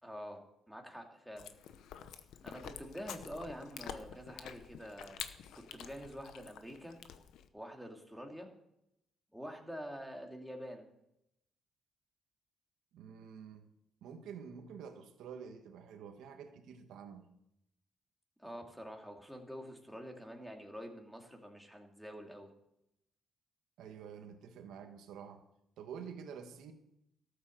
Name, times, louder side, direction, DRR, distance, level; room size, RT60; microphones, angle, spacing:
voice 1, 0.0-1.5 2.4-5.2 5.5-7.0 7.5-8.5 9.3-10.9 18.4-22.5, equal, ahead, 1 dB, 2.6 m, -47 dB
Chewing mastication, 1.4-7.5, left 9 dB, 85° left, 0.9 m, -48 dB
voice 2, 12.9-13.7 14.0-17.2 23.8-25.4 25.8-26.7, right 7 dB, 85° right, 6 dB, 1.4 m, -48 dB
13.5 x 8.5 x 6.5 m, 0.80 s
cardioid pair, 90°, 0 cm